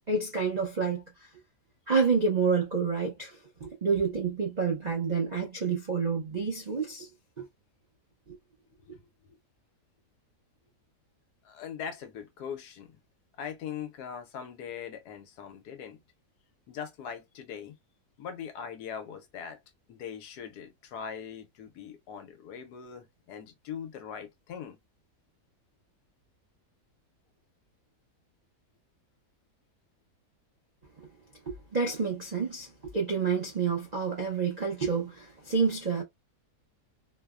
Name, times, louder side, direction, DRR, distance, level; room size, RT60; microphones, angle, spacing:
voice 1, 0.1-1.0 1.9-7.1 7.4-7.5 8.3-8.4 31.0-31.1 31.5-32.7 32.9-36.0, right 5 dB, 80° right, 0.3 m, -28 dB
voice 2, 8.8-9.4 11.4-12.9 13.4-16.0 16.7-17.7 18.2-19.6 19.9-24.8, left 7 dB, 75° left, 1.2 m, -41 dB
3.1 x 2.0 x 2.3 m
omnidirectional pair, 1.8 m